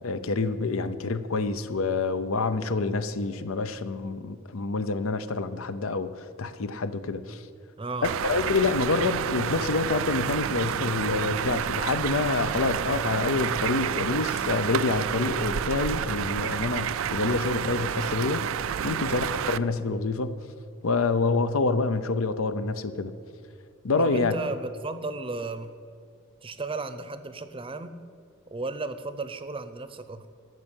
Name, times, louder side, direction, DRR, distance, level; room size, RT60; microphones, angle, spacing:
voice 1, 0.0-7.4 8.0-20.3 20.8-23.1 23.8-24.3, left 3 dB, 90° left, 12 dB, 0.7 m, -27 dB
voice 2, 7.8-8.2 19.0-19.3 24.0-25.7 26.4-28.0 28.5-30.3, right 3 dB, 25° right, 11 dB, 0.6 m, -34 dB
sound 1, 8.0-19.6, right 8 dB, 70° right, 0.4 m, -29 dB
13.5 x 6.2 x 8.9 m, 2.3 s
head